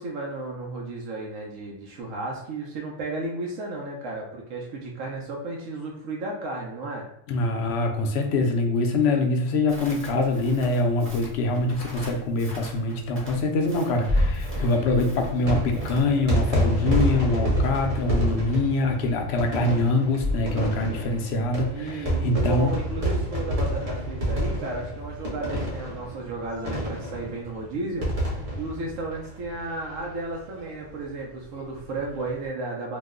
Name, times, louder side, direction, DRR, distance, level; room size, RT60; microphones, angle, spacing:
voice 1, 0.0-7.1 21.6-28.1 28.6-33.0, right 2 dB, 85° right, -2 dB, 1.0 m, -33 dB
voice 2, 7.3-22.7, left 2 dB, 65° left, 3 dB, 0.8 m, -24 dB
Crackle, 9.7-16.0, left 1 dB, 15° right, 0.6 m, -43 dB
sound 1, 14.0-30.0 30.3-30.4 30.6-30.7 32.0-32.2, equal, 30° right, 1.0 m, -28 dB
3.0 x 2.1 x 3.5 m, 0.78 s
omnidirectional pair, 1.3 m